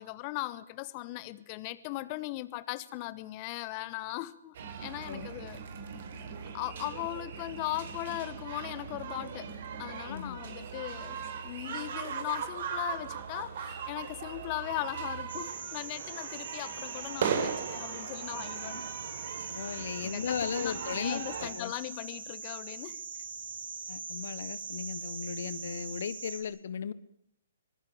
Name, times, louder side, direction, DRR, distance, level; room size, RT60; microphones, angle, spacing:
voice 1, 0.0-4.5 4.8-5.6 6.5-9.5 9.8-18.8 20.0-23.0, left 18 dB, 35° left, 1.2 m, -38 dB
sound 1, 4.5-21.5, right 7 dB, 55° right, 4.5 m, -39 dB
voice 2, 10.1-10.4 19.5-21.7 23.9-26.9, left 7 dB, 65° left, 1.2 m, -36 dB
sound 2, 15.3-26.4, right 5 dB, 80° right, 5.3 m, -42 dB
24.5 x 18.5 x 8.7 m
hypercardioid pair, 135°, 0 cm